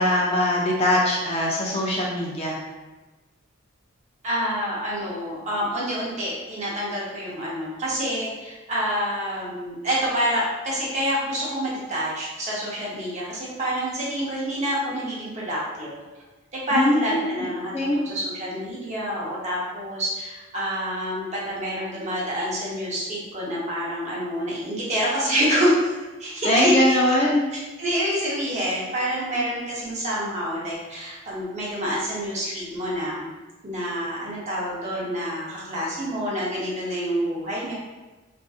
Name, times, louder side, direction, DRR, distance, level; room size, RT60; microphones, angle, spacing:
voice 1, 0.0-2.6 16.7-17.3 17.7-18.1 26.4-27.5, left 1 dB, 30° left, -3 dB, 0.3 m, -21 dB
voice 2, 4.2-15.9 16.5-25.9 26.2-27.0 27.8-33.3 33.6-37.7, equal, 35° right, -6 dB, 0.6 m, -27 dB
2.5 x 2.4 x 2.3 m, 1.2 s
head